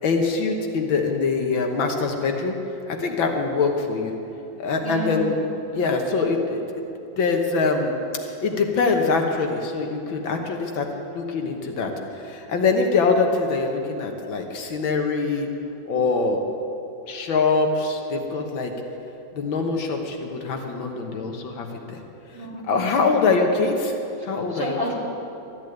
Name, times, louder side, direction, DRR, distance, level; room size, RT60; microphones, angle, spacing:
voice 1, 0.0-2.6 2.9-4.1 4.6-5.3 5.7-6.6 7.2-7.9 8.2-15.5 15.9-16.4 17.1-18.7 19.4-22.0 22.7-24.0 24.3-24.9, left 4 dB, 80° left, 3 dB, 2.0 m, -23 dB
voice 2, 4.8-5.3 22.3-22.8 24.5-24.9, equal, 10° right, -5 dB, 3.0 m, -29 dB
13.5 x 10.5 x 9.3 m, 3.0 s
omnidirectional pair, 2.1 m